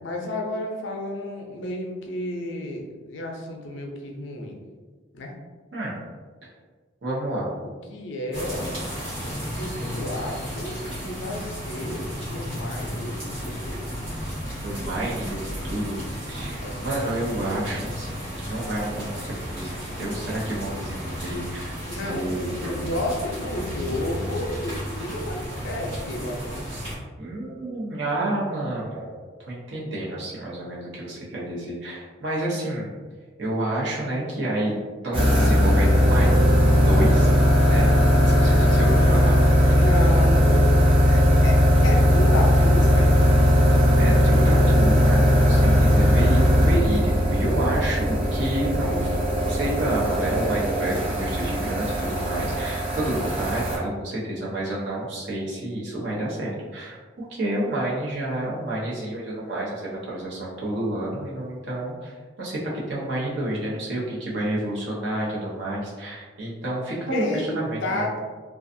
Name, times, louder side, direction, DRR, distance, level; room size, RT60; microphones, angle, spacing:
voice 1, 0.0-4.6 5.1-5.3 7.6-8.7 9.6-13.9 16.6-16.9 21.8-22.3 22.6-26.5 39.7-43.6 67.1-68.2, left 1 dB, 65° left, 1 dB, 0.5 m, -32 dB
voice 2, 7.0-7.5 14.6-16.0 16.3-21.8 22.1-22.9 26.7-26.8 27.2-29.2 29.5-32.9 33.4-34.7 35.0-36.4 36.8-37.3 37.7-37.9 38.2-39.4 39.6-39.8 44.0-49.1 49.5-62.1 62.4-68.0, right 1 dB, 65° right, -5 dB, 0.8 m, -29 dB
sound 1, 8.3-26.9, equal, 80° right, 1.4 m, -33 dB
sound 2, 35.1-53.8, equal, 25° right, 0.6 m, -18 dB
2.4 x 2.3 x 2.6 m, 1.4 s
head